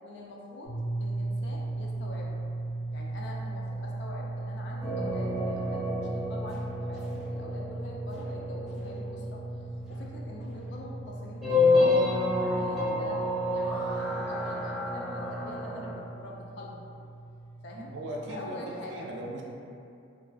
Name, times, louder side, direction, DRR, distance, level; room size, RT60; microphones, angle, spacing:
voice 1, 0.0-2.4 2.9-9.4 9.9-16.9 17.6-18.0 18.2-19.1, left 1 dB, 60° left, -2 dB, 0.3 m, -44 dB
sound 1, 0.6-18.5, right 2 dB, 80° left, 1.0 m, -38 dB
sound 2, 4.8-16.0, left 2 dB, 5° right, 0.5 m, -30 dB
voice 2, 17.7-18.6 18.9-19.4, right 1 dB, 70° right, -2 dB, 0.3 m, -38 dB
2.4 x 2.2 x 2.3 m, 2.5 s
head